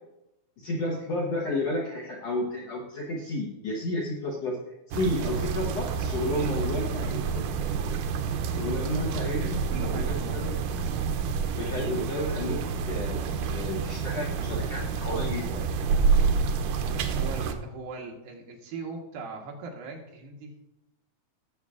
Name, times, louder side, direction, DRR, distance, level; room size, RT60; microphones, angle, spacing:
voice 1, 0.6-4.6 4.9-7.5 8.6-10.5 11.6-12.6 12.9-15.7, left 1 dB, 65° left, -3 dB, 1.6 m, -31 dB
sound 1, 4.9-17.5, right 5 dB, 90° right, 1.7 m, -28 dB
voice 2, 9.1-10.7 16.8-20.5, right 4 dB, 75° right, 0 dB, 2.9 m, -40 dB
17.0 x 7.1 x 2.4 m, 0.89 s
omnidirectional pair, 4.4 m